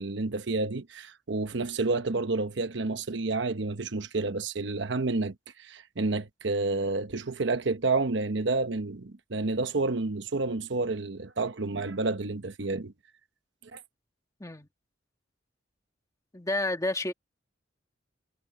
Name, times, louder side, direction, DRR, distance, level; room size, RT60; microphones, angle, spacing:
voice 1, 0.0-12.9 13.7-13.8, right 3 dB, 65° right, 1.0 m, -30 dB
voice 2, 16.3-17.1, left 2 dB, 15° left, 1.7 m, -30 dB
head